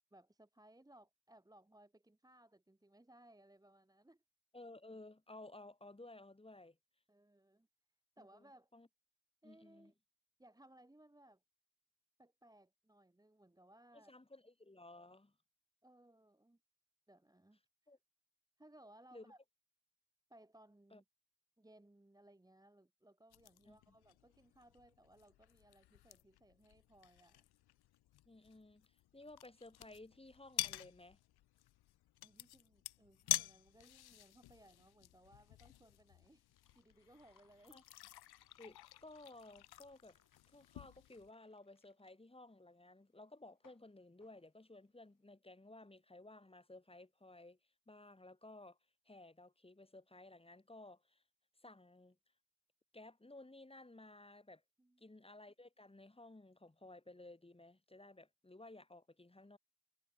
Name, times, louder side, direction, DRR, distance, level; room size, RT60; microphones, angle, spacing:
voice 1, 0.1-4.2 7.1-7.7 8.2-8.7 9.4-9.9 10.4-11.4 12.2-14.1 15.8-16.6 17.1-17.9 18.6-19.4 20.3-21.0 21.6-27.4 32.2-36.4 36.7-37.8 54.8-55.1, right 1 dB, 10° right, 2.2 m, -64 dB
voice 2, 4.5-6.8 8.2-8.9 9.4-9.9 13.9-15.4 17.9-18.0 19.1-19.3 20.9-21.0 23.7-23.9 28.2-31.2 37.7-37.8 38.6-40.2 40.5-47.6 47.9-48.8 49.0-51.2 51.6-52.2 52.9-54.6 55.0-59.6, left 2 dB, 15° left, 5.8 m, -57 dB
sound 1, 23.3-41.3, left 15 dB, 65° left, 0.6 m, -48 dB
sound 2, 35.5-45.1, left 7 dB, 50° left, 4.9 m, -75 dB
cardioid pair, 110°, 41 cm